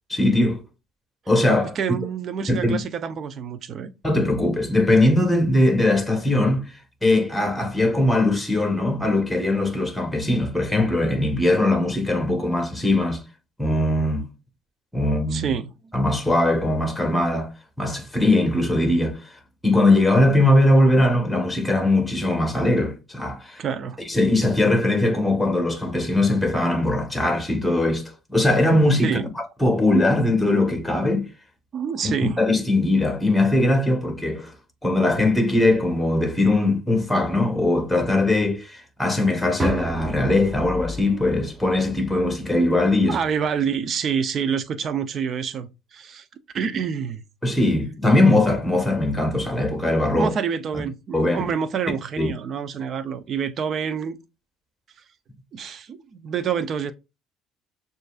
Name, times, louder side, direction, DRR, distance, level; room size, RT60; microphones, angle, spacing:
voice 1, 0.1-0.6 1.3-1.8 2.5-2.7 4.0-6.7 7.0-13.2 13.6-14.2 14.9-15.6 15.9-17.5 17.8-19.2 19.6-23.6 24.1-29.1 29.6-31.3 32.0-32.1 32.4-34.5 34.8-43.2 47.4-50.3 51.1-51.5 52.2-52.3, left 1 dB, 5° left, 1.3 m, -20 dB
voice 2, 1.8-3.9 15.3-15.7 23.6-24.0 29.0-29.3 31.7-32.4 43.1-46.2 46.5-47.2 50.1-54.2 55.5-56.9, right 7 dB, 45° right, 0.6 m, -27 dB
sound 1, 39.6-43.6, right 1 dB, 15° right, 1.0 m, -33 dB
6.4 x 2.6 x 2.4 m
cardioid pair, 115°, 0 cm